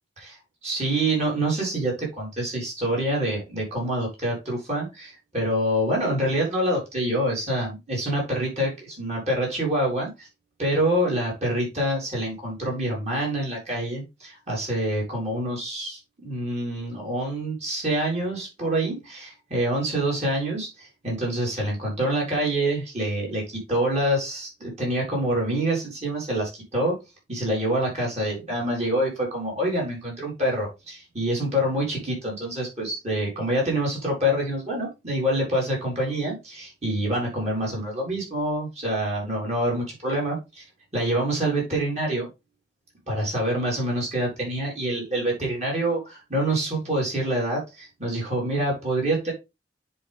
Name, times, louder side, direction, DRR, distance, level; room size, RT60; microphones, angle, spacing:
voice 1, 0.6-10.3 10.6-27.0 27.3-40.6 40.9-42.3 43.1-49.3, right 1 dB, 40° right, -3 dB, 4.3 m, -26 dB
9.8 x 4.2 x 3.5 m, 0.24 s
head